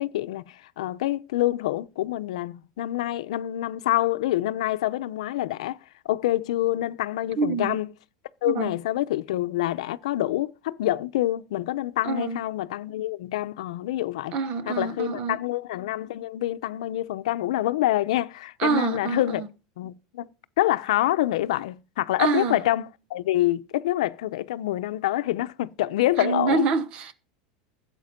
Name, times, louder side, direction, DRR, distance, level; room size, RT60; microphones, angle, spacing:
voice 1, 0.0-5.8 6.0-7.9 8.4-14.4 14.7-19.4 19.8-20.3 20.6-26.7, left 14 dB, 75° left, 0.8 m, -26 dB
voice 2, 7.4-7.8 8.4-8.8 12.0-12.4 14.3-15.4 18.6-19.5 22.2-22.6 26.2-27.2, right 5 dB, 30° right, 1.1 m, -26 dB
16.0 x 8.1 x 5.2 m
supercardioid pair, 180°, 4 cm